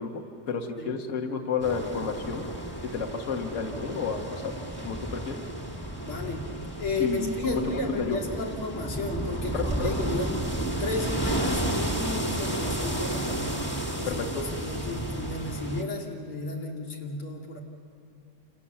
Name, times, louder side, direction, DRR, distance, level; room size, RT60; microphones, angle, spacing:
voice 1, 0.0-2.5 2.8-4.5 4.8-5.4 7.0-8.2 9.5-10.0 14.0-14.4, left 5 dB, 40° left, 3 dB, 1.8 m, -31 dB
sound 1, 1.6-15.8, right 1 dB, 5° left, 1.5 m, -32 dB
voice 2, 6.0-6.5 6.8-13.5 14.0-14.2 14.6-17.6, left 2 dB, 80° left, 0 dB, 3.3 m, -33 dB
29.0 x 28.5 x 7.2 m, 2.6 s
omnidirectional pair, 2.3 m